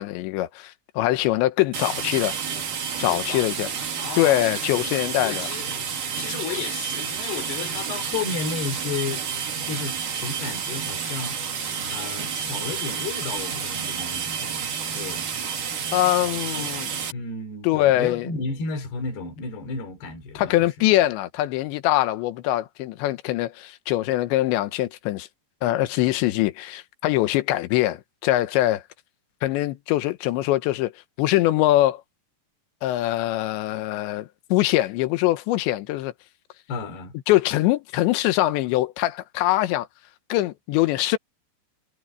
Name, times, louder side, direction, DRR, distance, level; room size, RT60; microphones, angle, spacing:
voice 1, 0.0-2.4 3.0-3.7 4.2-5.5 15.9-16.9 17.6-18.3 20.4-25.3 25.6-28.8 29.4-30.9 31.2-32.0 32.8-36.1 37.3-39.9 40.3-41.2, left 15 dB, 80° left, 3.3 m, -23 dB
sound 1, 1.7-17.1, right 7 dB, 50° right, 4.2 m, -30 dB
voice 2, 3.1-4.9 5.2-9.2 9.7-11.4 11.9-14.7 14.9-15.2 16.6-16.7 17.1-20.5 36.7-37.1, left 4 dB, 65° left, 5.8 m, -33 dB
omnidirectional pair, 5.1 m